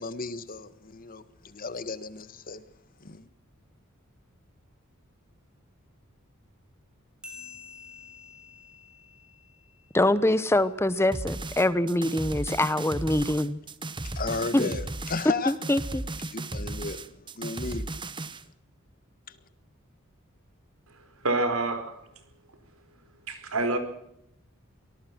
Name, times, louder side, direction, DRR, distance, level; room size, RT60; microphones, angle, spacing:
voice 1, 0.0-2.6 3.0-3.3 14.0-15.5 16.3-17.9 19.3-19.4, left 4 dB, 40° left, 1.5 m, -34 dB
sound 1, 7.2-10.3, left 5 dB, 5° right, 7.0 m, -48 dB
voice 2, 9.9-13.6 14.5-14.7 15.5-16.0, left 1 dB, 10° left, 0.8 m, -24 dB
sound 2, 11.1-18.4, right 2 dB, 20° right, 1.1 m, -35 dB
voice 3, 21.2-22.0 23.3-23.8, right 2 dB, 80° right, 4.7 m, -27 dB
25.0 x 19.0 x 6.1 m
head